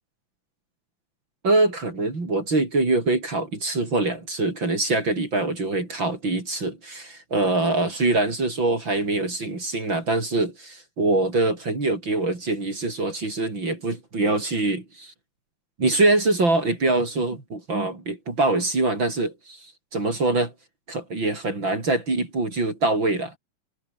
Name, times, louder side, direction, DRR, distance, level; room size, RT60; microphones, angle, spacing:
voice 1, 1.4-15.1 15.8-20.5 20.9-23.3, right 2 dB, 35° right, 5.6 m, -24 dB
omnidirectional pair, 3.6 m